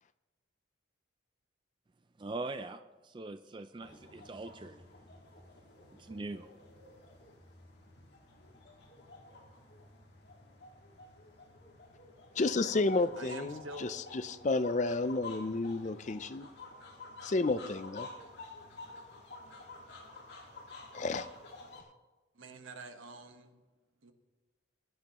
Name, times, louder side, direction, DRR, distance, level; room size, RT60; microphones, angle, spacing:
voice 1, 2.2-4.8 6.0-6.5, right 2 dB, 25° right, 9 dB, 0.3 m, -42 dB
sound 1, 3.8-21.8, left 3 dB, 55° left, 2.0 m, -51 dB
voice 2, 12.4-16.5 17.2-18.1 20.9-21.3, left 3 dB, 35° left, 13 dB, 0.4 m, -31 dB
voice 3, 13.1-14.0 22.3-23.6 24.0-24.1, right 2 dB, 80° right, 6 dB, 1.3 m, -47 dB
20.5 x 10.5 x 3.0 m, 1.2 s
head